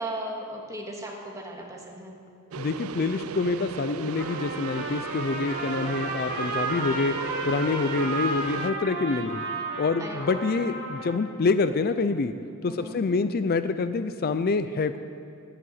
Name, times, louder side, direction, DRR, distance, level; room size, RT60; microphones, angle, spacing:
voice 1, 0.0-2.2 10.0-10.4 12.7-13.0, right 1 dB, 15° right, 0 dB, 1.9 m, -36 dB
sound 1, 2.5-8.7, right 7 dB, 90° right, 0.4 m, -37 dB
voice 2, 2.6-7.2 7.4-9.4 9.8-12.3 12.6-15.0, left 4 dB, 45° left, 11 dB, 0.5 m, -26 dB
Trumpet, 4.1-11.3, right 2 dB, 60° right, 3.3 m, -33 dB
11.0 x 11.0 x 8.7 m, 2.6 s
head